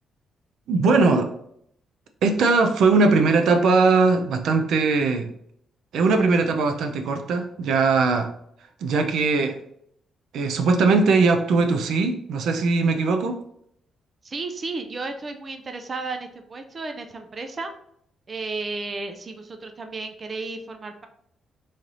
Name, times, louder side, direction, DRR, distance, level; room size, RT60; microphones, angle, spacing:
voice 1, 0.7-1.3 2.2-5.3 5.9-8.3 8.8-9.6 10.3-13.4, right 4 dB, 75° right, 6 dB, 0.6 m, -20 dB
voice 2, 14.2-17.7 18.3-21.1, right 3 dB, 30° right, 6 dB, 0.5 m, -33 dB
4.2 x 3.2 x 3.9 m, 0.71 s
cardioid pair, 135°, 0 cm